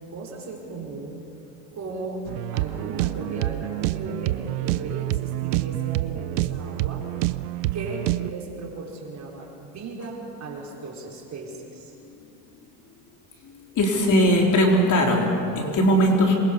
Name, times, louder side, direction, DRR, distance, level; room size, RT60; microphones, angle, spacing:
voice 1, 0.1-1.3 1.7-2.2 2.5-7.1 7.7-11.9, right 3 dB, 35° right, -1 dB, 5.0 m, -36 dB
sound 1, 2.3-8.3, right 17 dB, 85° right, 0.7 m, -27 dB
voice 2, 13.8-16.4, equal, 40° left, 0 dB, 4.1 m, -19 dB
27.0 x 23.0 x 5.6 m, 2.6 s
supercardioid pair, 110°, 46 cm